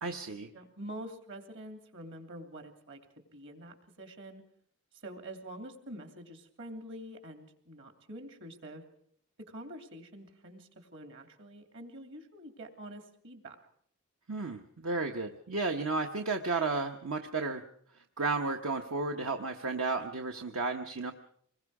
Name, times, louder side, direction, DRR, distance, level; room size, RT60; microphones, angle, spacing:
voice 1, 0.0-0.5 14.3-17.6 18.2-21.1, right 3 dB, 80° right, 5 dB, 1.1 m, -33 dB
voice 2, 0.5-4.4 5.0-8.8 9.5-13.6, right 1 dB, 60° right, 6 dB, 3.0 m, -46 dB
25.5 x 21.5 x 4.9 m, 0.62 s
head